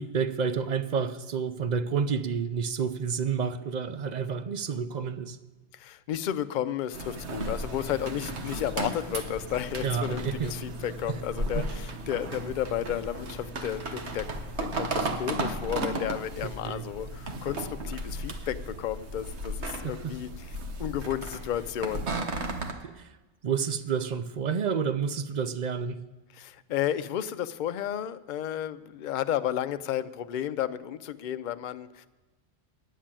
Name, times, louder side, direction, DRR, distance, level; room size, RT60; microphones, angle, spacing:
voice 1, 0.0-5.4 9.8-10.5 11.1-11.2 11.5-11.6 16.4-16.8 19.8-20.1 22.8-23.1 23.4-26.0, right 6 dB, 50° right, 12 dB, 0.6 m, -30 dB
voice 2, 5.7-14.3 14.6-20.3 20.8-22.1 26.3-32.1, left 11 dB, 55° left, 12 dB, 0.6 m, -32 dB
sound 1, 6.9-22.7, right 2 dB, 80° right, 1.4 m, -35 dB
10.0 x 7.3 x 8.9 m, 1.1 s
omnidirectional pair, 1.1 m